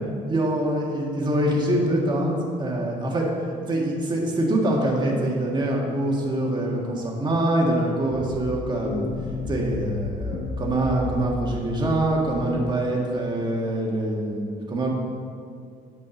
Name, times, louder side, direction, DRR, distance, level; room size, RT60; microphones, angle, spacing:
voice 1, 0.3-3.3 3.7-9.1 9.5-14.9, right 1 dB, 25° right, -2 dB, 2.0 m, -24 dB
sound 1, 8.1-12.8, left 4 dB, 50° left, 0.7 m, -33 dB
8.8 x 5.3 x 7.1 m, 2.3 s
cardioid pair, 110°, 17 cm